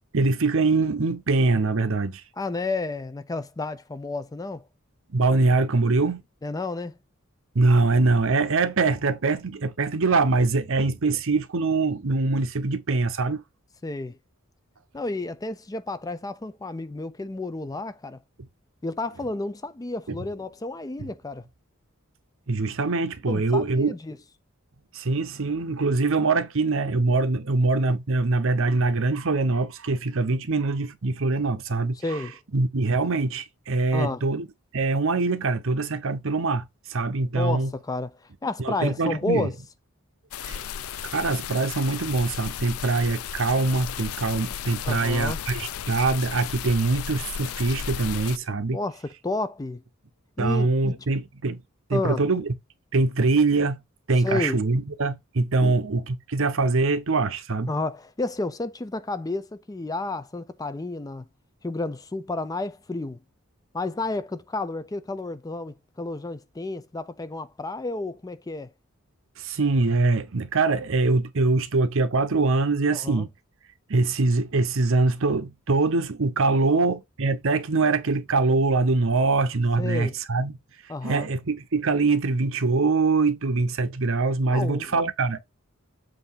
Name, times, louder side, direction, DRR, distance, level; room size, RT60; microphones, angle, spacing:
voice 1, 0.1-2.2 5.1-6.2 7.5-13.4 22.5-23.9 24.9-32.2 32.5-34.5 34.7-36.6 36.9-37.7 38.6-39.5 40.4-40.6 41.0-48.8 50.4-51.6 51.9-52.5 52.9-53.8 54.1-57.7 69.4-73.3 73.9-80.5 81.0-85.5, right 3 dB, 65° right, 0.8 m, -23 dB
voice 2, 2.4-4.7 6.4-7.0 13.8-14.2 14.9-18.2 18.8-21.5 23.3-24.2 32.0-32.4 33.9-34.2 37.3-39.6 44.8-45.4 48.7-49.8 50.4-51.1 51.9-52.2 54.2-54.6 55.6-55.8 57.7-61.2 61.6-63.2 63.7-68.7 72.9-73.3 76.5-76.9 79.8-80.2 80.9-81.3 84.5-85.1, left 2 dB, 15° left, 0.4 m, -31 dB
sound 1, 40.3-48.4, left 8 dB, 75° left, 0.5 m, -34 dB
7.7 x 2.7 x 5.6 m
head